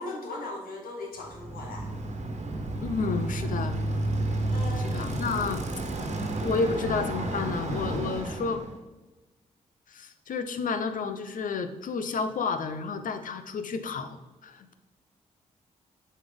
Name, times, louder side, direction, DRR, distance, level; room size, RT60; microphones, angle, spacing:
voice 1, 0.0-1.9 4.5-4.9 7.3-7.4, left 2 dB, 85° left, 1 dB, 1.7 m, -38 dB
Bicycle, 1.2-8.7, right 2 dB, 50° right, 1.4 m, -31 dB
voice 2, 2.8-3.8 4.8-5.6 6.4-8.6 9.9-14.2 14.4-14.7, left 4 dB, 65° left, 9 dB, 0.8 m, -31 dB
7.1 x 4.3 x 5.3 m, 1.1 s
supercardioid pair, 55°, 15 cm